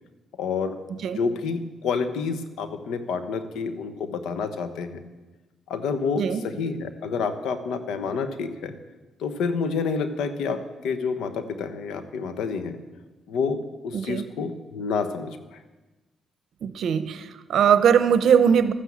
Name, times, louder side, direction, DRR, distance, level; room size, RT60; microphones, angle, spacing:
voice 1, 0.4-0.8 1.1-5.0 5.7-8.7 9.2-12.8 13.3-15.6, left 5 dB, 85° left, 9 dB, 1.2 m, -28 dB
voice 2, 0.9-1.2 6.2-6.4 13.9-14.3 16.6-18.7, right 8 dB, 70° right, 12 dB, 0.8 m, -21 dB
13.0 x 9.8 x 7.3 m, 1.2 s
cardioid pair, 85°, 0 cm